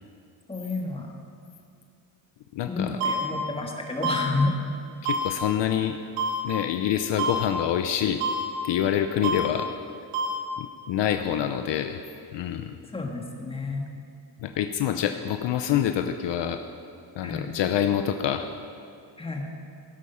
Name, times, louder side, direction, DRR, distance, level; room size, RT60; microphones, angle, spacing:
voice 1, 0.5-1.1 2.7-4.5 12.9-13.9 17.2-17.4 19.2-19.5, left 3 dB, 10° left, 1 dB, 1.7 m, -30 dB
voice 2, 2.5-3.1 5.0-6.0 6.4-8.2 8.6-9.7 10.6-12.0 12.3-12.8 14.4-16.6 17.2-18.5, left 10 dB, 65° left, 7 dB, 0.7 m, -26 dB
sound 1, 3.0-3.1 4.0-4.1 5.0-5.2 6.2-6.3 7.2-7.3 8.2-8.3 9.2-9.4 10.1-10.3, right 5 dB, 90° right, 2.3 m, -25 dB
16.5 x 8.4 x 5.6 m, 2.4 s
cardioid pair, 135°, 47 cm